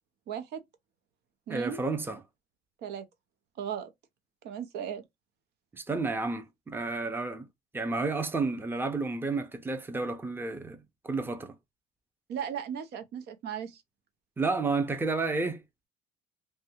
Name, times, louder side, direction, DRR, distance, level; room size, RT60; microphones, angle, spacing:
voice 1, 0.3-0.6 1.5-1.8 2.8-3.0 3.6-3.9 4.4-5.0 12.3-13.8, right 8 dB, 75° right, 0.7 m, -36 dB
voice 2, 1.5-2.2 5.7-7.5 7.7-11.5 14.4-15.6, right 3 dB, 10° right, 0.6 m, -31 dB
3.3 x 2.2 x 2.9 m
cardioid pair, 110°, 17 cm